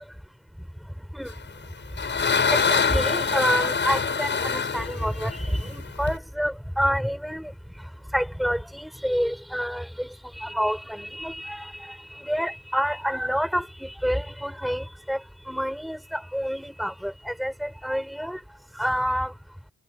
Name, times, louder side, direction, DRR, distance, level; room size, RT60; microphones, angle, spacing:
sound 1, 1.5-6.2, left 5 dB, 35° left, 7.6 m, -25 dB
voice 1, 2.5-7.5 8.1-10.1 10.4-12.0 12.2-15.2 15.5-18.4 18.8-19.3, equal, ahead, 7.0 m, -28 dB
cardioid pair, 90°, 30 cm